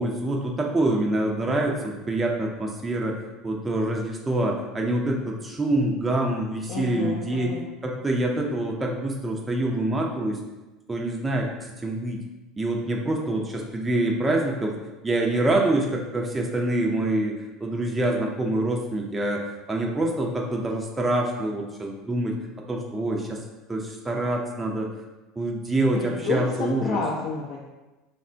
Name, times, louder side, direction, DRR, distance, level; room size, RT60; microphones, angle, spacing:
voice 1, 0.0-3.2 3.4-7.5 7.8-10.4 10.9-12.2 12.6-14.7 15.0-17.3 17.6-22.3 22.7-23.4 23.7-24.9 25.4-27.0, right 1 dB, 20° right, 0 dB, 0.4 m, -26 dB
voice 2, 6.7-7.6 25.9-27.6, left 3 dB, 50° left, -5 dB, 0.5 m, -30 dB
3.5 x 2.1 x 2.5 m, 1.1 s
hypercardioid pair, 75°, 0 cm